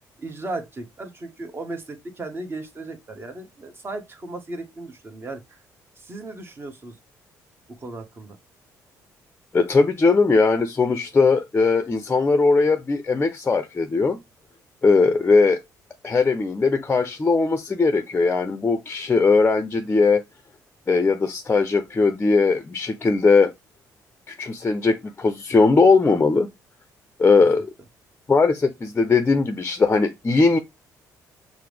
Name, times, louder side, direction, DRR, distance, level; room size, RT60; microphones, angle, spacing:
voice 1, 0.2-5.6 6.0-7.0 7.8-8.4, right 2 dB, 30° right, 1.1 m, -36 dB
voice 2, 9.5-14.2 14.8-15.6 16.0-20.2 20.9-23.5 24.3-26.5 27.2-27.7 28.3-30.6, left 4 dB, 25° left, 0.5 m, -19 dB
5.7 x 2.0 x 3.3 m
cardioid pair, 85°, 7 cm